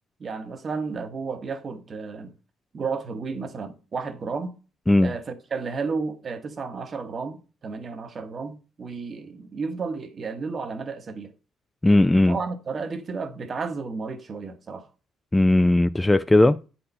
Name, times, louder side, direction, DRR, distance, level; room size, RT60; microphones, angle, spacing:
voice 1, 0.2-2.3 2.7-4.5 5.0-11.3 12.2-14.9, right 4 dB, 40° right, 1.1 m, -32 dB
voice 2, 11.8-12.4 15.3-16.6, left 1 dB, 10° left, 0.3 m, -18 dB
8.6 x 4.4 x 5.4 m
cardioid pair, 110°, 0 cm